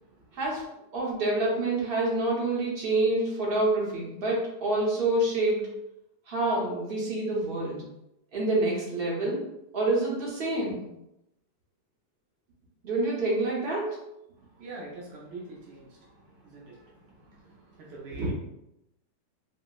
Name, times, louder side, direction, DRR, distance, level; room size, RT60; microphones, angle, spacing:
voice 1, 0.9-5.7 6.3-7.8 8.3-9.5 9.7-10.8 12.8-14.0, right 2 dB, 45° right, -4 dB, 0.8 m, -27 dB
voice 2, 14.6-15.9 16.4-16.8 17.8-18.3, right 2 dB, 85° right, -4 dB, 0.5 m, -38 dB
4.3 x 2.0 x 2.3 m, 0.86 s
omnidirectional pair, 1.9 m